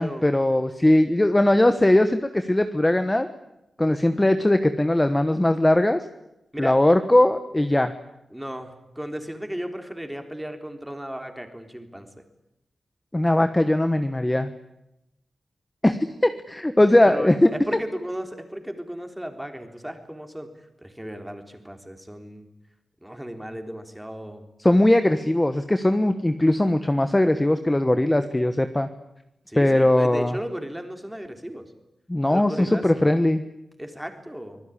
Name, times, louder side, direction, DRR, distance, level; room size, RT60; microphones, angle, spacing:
voice 1, 0.0-3.3 3.8-6.0 6.6-7.9 13.1-14.5 15.8-16.0 16.5-17.5 24.6-28.9 29.6-30.4 32.1-33.4, left 1 dB, 10° left, 9 dB, 1.2 m, -20 dB
voice 2, 8.3-12.1 17.1-20.5 20.8-22.5 23.0-24.5 29.5-31.7 32.3-32.9 33.8-34.6, equal, 5° right, 6 dB, 3.6 m, -35 dB
25.5 x 21.0 x 10.0 m, 0.88 s
wide cardioid pair, 165°, 0 cm